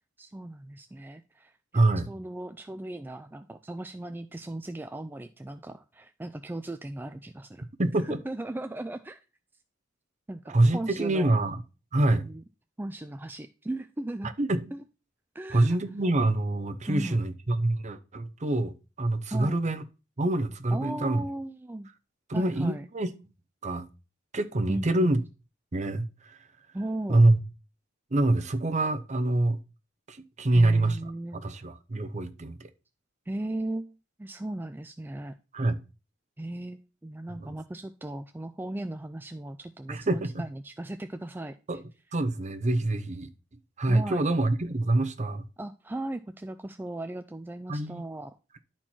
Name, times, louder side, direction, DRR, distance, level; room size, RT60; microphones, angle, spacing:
voice 1, 0.2-7.7 8.0-9.2 10.3-11.3 12.2-12.4 12.8-14.3 14.7-14.8 15.3-15.8 16.9-17.2 19.3-19.6 20.7-21.9 22.3-22.8 24.7-25.2 26.7-27.3 30.5-31.4 33.3-35.4 36.4-41.6 43.9-44.4 45.6-48.3, right 1 dB, 10° right, 0.3 m, -37 dB
voice 2, 1.7-2.1 7.8-8.1 10.5-11.6 11.9-12.3 14.4-14.6 15.5-19.8 20.2-21.2 22.3-23.1 23.6-23.9 24.3-25.2 25.7-26.4 27.1-27.4 28.1-29.6 30.1-31.0 31.3-32.7 35.5-35.8 37.3-37.5 39.9-40.4 41.7-41.8 42.1-43.3 43.8-45.4 47.7-48.0, right 2 dB, 35° right, 0.8 m, -25 dB
11.5 x 4.4 x 4.4 m
head